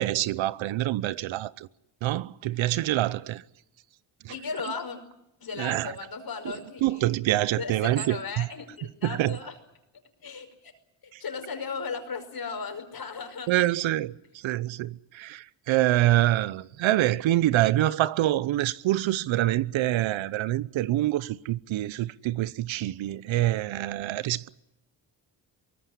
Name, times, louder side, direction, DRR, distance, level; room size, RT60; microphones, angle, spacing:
voice 1, 0.0-1.7 2.0-3.4 4.2-4.3 5.6-5.9 6.4-6.5 6.8-8.5 9.0-9.4 11.1-11.2 13.5-24.5, right 15 dB, 80° right, 0.9 m, -26 dB
voice 2, 4.3-5.0 5.4-7.0 7.6-9.6 10.2-10.7 11.0-13.5, left 5 dB, 50° left, 5.4 m, -36 dB
23.5 x 19.0 x 10.0 m
cardioid pair, 80°, 46 cm